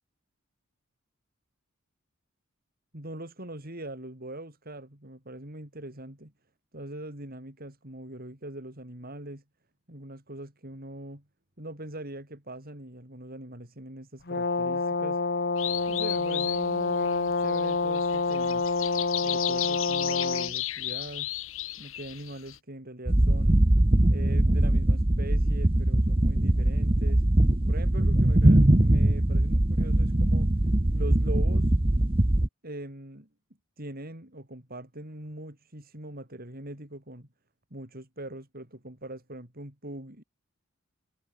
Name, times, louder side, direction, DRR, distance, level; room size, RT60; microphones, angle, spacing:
voice 1, 2.9-6.3 6.7-9.4 9.9-11.2 11.6-15.2 15.9-18.7 19.2-21.3 21.8-23.6 24.1-27.2 27.7-30.5 30.9-31.7 32.6-33.3 33.8-37.3 37.7-40.2, right 1 dB, 45° right, 5.1 m, -42 dB
Brass instrument, 14.3-20.5, left 3 dB, 50° left, 1.6 m, -27 dB
sound 1, 15.6-22.6, left 14 dB, 70° left, 2.7 m, -35 dB
sound 2, 23.1-32.5, right 1 dB, 25° right, 1.1 m, -22 dB
head